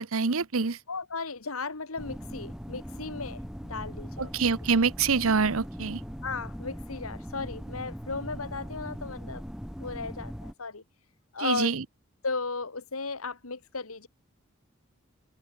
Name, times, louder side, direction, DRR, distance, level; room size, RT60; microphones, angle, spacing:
voice 1, 0.0-0.8 4.2-6.0 11.4-11.8, right 4 dB, 75° right, 0.9 m, -26 dB
voice 2, 0.9-4.3 6.2-9.4 9.8-10.8 11.3-11.7 12.2-14.1, left 4 dB, 80° left, 2.1 m, -35 dB
sound 1, 2.0-10.5, equal, ahead, 5.6 m, -40 dB
head